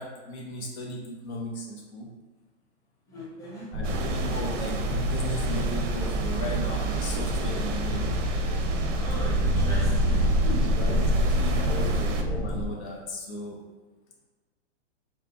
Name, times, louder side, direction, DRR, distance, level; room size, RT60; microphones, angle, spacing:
voice 1, 0.0-2.1 3.7-8.1 10.8-11.1 11.4-13.6, left 1 dB, 65° left, -1 dB, 1.0 m, -36 dB
voice 2, 3.1-3.7 8.9-11.9, equal, 10° left, -7 dB, 0.9 m, -38 dB
sound 1, 3.7-12.7, equal, 25° right, 0.6 m, -26 dB
sound 2, 3.8-12.2, right 5 dB, 85° right, 0.7 m, -35 dB
3.6 x 2.2 x 4.1 m, 1.3 s
hypercardioid pair, 140°, 36 cm